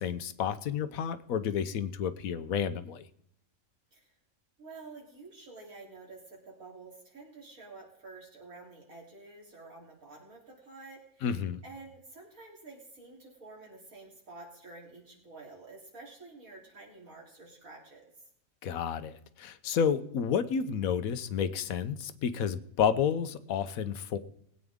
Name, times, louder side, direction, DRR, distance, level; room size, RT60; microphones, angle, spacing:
voice 1, 0.0-3.0 11.2-11.6 18.6-24.2, left 7 dB, 80° left, 13 dB, 1.2 m, -30 dB
voice 2, 4.6-11.3 11.6-18.1, right 3 dB, 80° right, -3 dB, 3.8 m, -50 dB
20.5 x 8.9 x 3.6 m, 0.73 s
omnidirectional pair, 1.4 m